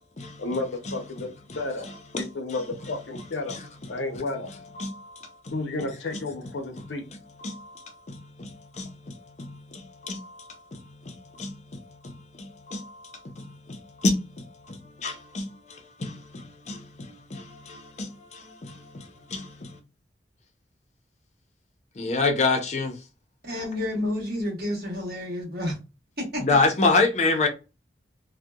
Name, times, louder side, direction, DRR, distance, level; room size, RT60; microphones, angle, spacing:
voice 1, 0.4-1.9 2.1-3.6 3.9-4.5 5.5-7.0, left 2 dB, 85° left, 0.6 m, -32 dB
voice 2, 1.5-2.6 3.5-3.6 4.8-5.3 7.4-19.8 22.0-23.0 26.4-27.5, left 3 dB, 40° left, 0.5 m, -29 dB
voice 3, 23.4-25.7 26.2-26.4, left 1 dB, 55° right, 1.2 m, -30 dB
2.7 x 2.1 x 2.2 m
head